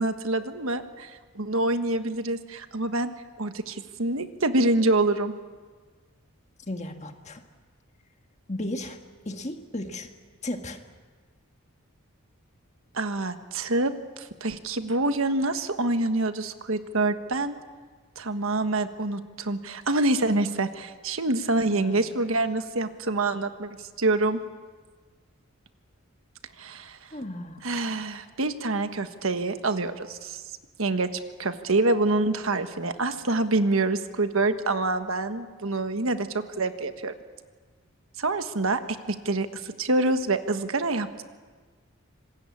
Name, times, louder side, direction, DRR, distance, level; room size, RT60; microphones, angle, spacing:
voice 1, 0.0-3.1 3.4-5.3 12.9-13.9 14.2-17.6 18.2-24.4 26.6-27.1 27.6-30.4 30.8-31.1 31.4-37.1 38.2-38.8 39.1-41.2, right 2 dB, 70° right, 9 dB, 1.4 m, -26 dB
voice 2, 6.7-7.4 8.5-9.0 9.2-10.1 10.4-10.8 21.7-22.0 27.1-27.6, left 1 dB, 30° left, 5 dB, 1.7 m, -34 dB
26.0 x 20.5 x 8.6 m, 1.5 s
head